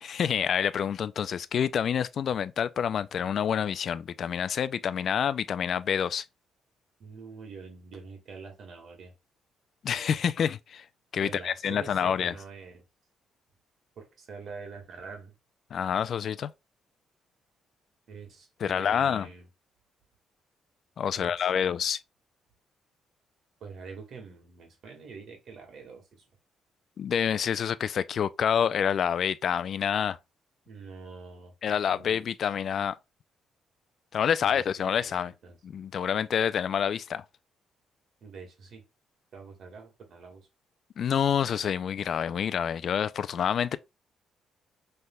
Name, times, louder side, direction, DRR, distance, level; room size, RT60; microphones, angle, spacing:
voice 1, 0.0-6.2 9.8-10.8 11.1-12.3 15.7-16.5 18.6-19.3 21.0-22.0 27.0-30.2 31.6-33.0 34.1-35.3 35.6-37.2 41.0-43.8, left 8 dB, 60° left, 0.3 m, -27 dB
voice 2, 7.0-9.1 11.2-12.8 13.9-15.3 18.1-19.5 21.1-21.7 23.6-26.2 30.6-32.2 34.4-35.6 38.2-38.8 39.3-40.5, right 5 dB, 65° right, 1.7 m, -45 dB
5.6 x 3.3 x 2.2 m
cardioid pair, 90°, 0 cm